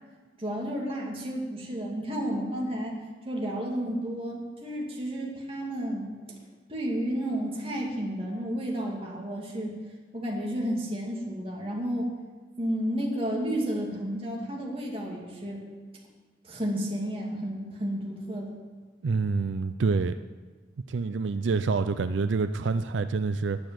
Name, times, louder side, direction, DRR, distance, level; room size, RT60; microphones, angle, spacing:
voice 1, 0.4-2.9 3.3-6.1 6.7-9.7 10.1-12.1 12.6-15.6 16.4-18.5, equal, 30° right, -2 dB, 2.5 m, -31 dB
voice 2, 19.0-20.1 20.9-23.6, right 4 dB, 90° right, 11 dB, 0.4 m, -27 dB
10.5 x 8.6 x 7.7 m, 1.4 s
head